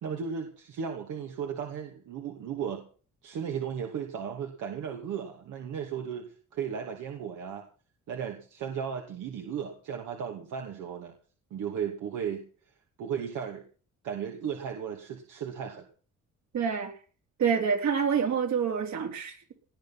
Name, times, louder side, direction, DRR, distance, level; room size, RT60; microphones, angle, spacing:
voice 1, 0.0-2.8 3.2-7.6 8.1-11.1 11.5-12.4 13.0-13.6 14.0-15.8, right 7 dB, 80° right, 2 dB, 2.6 m, -35 dB
voice 2, 16.5-16.9 17.4-19.5, right 6 dB, 65° right, 4 dB, 4.2 m, -27 dB
19.0 x 10.5 x 6.1 m, 0.41 s
cardioid pair, 90°, 30 cm